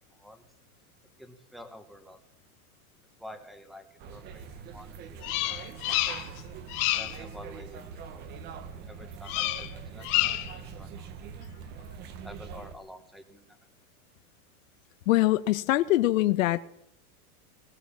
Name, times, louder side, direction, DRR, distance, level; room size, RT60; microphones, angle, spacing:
voice 1, 1.2-2.2 3.2-4.5 4.7-5.7 7.0-8.2 8.7-11.6 12.2-13.4, equal, ahead, 8 dB, 1.4 m, -49 dB
sound 1, 4.0-12.7, right 6 dB, 20° right, 1.2 m, -43 dB
Bird vocalization bird call bird song, 5.2-6.4 6.7-7.2 9.3-9.7 10.0-10.6, left 17 dB, 30° left, 1.3 m, -28 dB
voice 2, 15.1-16.6, left 16 dB, 60° left, 11 dB, 1.1 m, -23 dB
19.0 x 18.0 x 7.5 m, 0.73 s
supercardioid pair, 180°, 45 cm